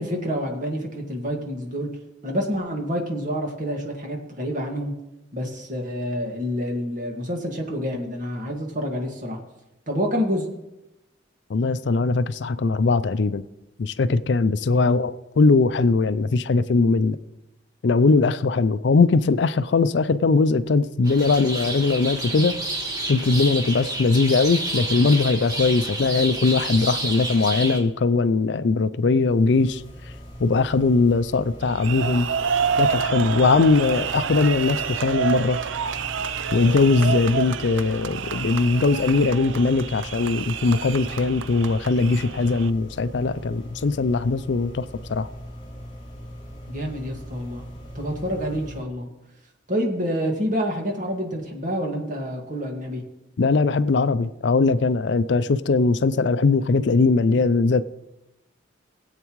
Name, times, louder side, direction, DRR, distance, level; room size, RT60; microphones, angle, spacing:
voice 1, 0.0-1.9 2.2-4.9 5.3-9.4 9.9-10.5 14.7-15.0 46.7-47.6 48.0-49.1 49.7-53.0, equal, 45° right, 1.9 m, -28 dB
voice 2, 11.5-13.4 13.8-17.2 17.8-22.6 23.1-29.8 30.4-32.3 32.8-35.6 36.5-45.3 53.4-57.8, left 3 dB, 65° left, 0.4 m, -20 dB
sound 1, 21.0-27.8, right 2 dB, 20° right, 1.6 m, -30 dB
sound 2, 29.2-48.8, equal, 30° left, 4.5 m, -40 dB
sound 3, 31.6-42.7, right 7 dB, 80° right, 0.5 m, -28 dB
19.5 x 8.2 x 3.1 m
head